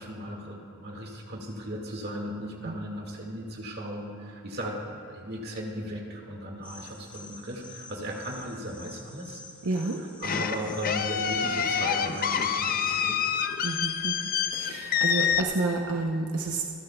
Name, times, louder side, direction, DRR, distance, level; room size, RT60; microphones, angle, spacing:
voice 1, 0.0-9.4 9.9-13.3, equal, 45° right, 0 dB, 2.0 m, -37 dB
sound 1, 6.6-13.2, left 3 dB, 5° left, 0.9 m, -48 dB
voice 2, 9.6-10.0 13.6-16.6, right 3 dB, 85° right, 1 dB, 0.8 m, -30 dB
sound 2, 10.2-15.4, left 7 dB, 40° left, 0.5 m, -27 dB
26.5 x 11.5 x 2.3 m, 2.7 s
head